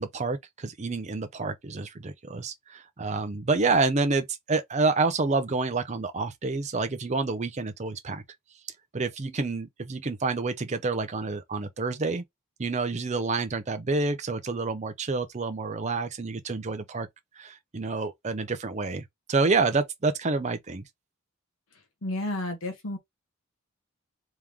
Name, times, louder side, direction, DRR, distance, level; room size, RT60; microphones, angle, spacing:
voice 1, 0.0-8.2 8.9-12.2 12.6-17.1 17.4-20.8, right 3 dB, 35° right, 0.6 m, -28 dB
voice 2, 22.0-23.0, left 1 dB, 70° left, 1.2 m, -31 dB
3.6 x 3.0 x 3.4 m
head